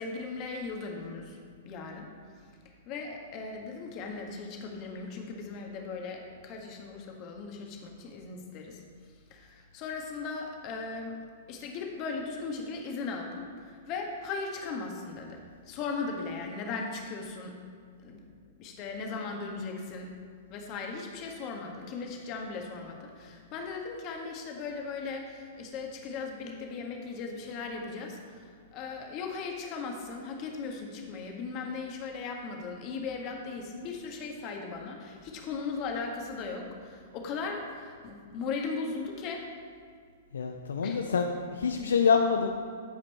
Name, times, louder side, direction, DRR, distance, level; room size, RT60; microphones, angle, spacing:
voice 1, 0.0-1.4 1.6-2.1 2.9-8.8 9.3-17.6 18.0-18.3 18.6-20.1 20.5-39.4 40.8-41.0, left 4 dB, 40° left, 1 dB, 1.7 m, -38 dB
voice 2, 40.3-42.5, left 5 dB, 75° left, 4 dB, 0.6 m, -26 dB
14.5 x 5.2 x 4.4 m, 2.1 s
figure-of-eight pair, 105°, 0 cm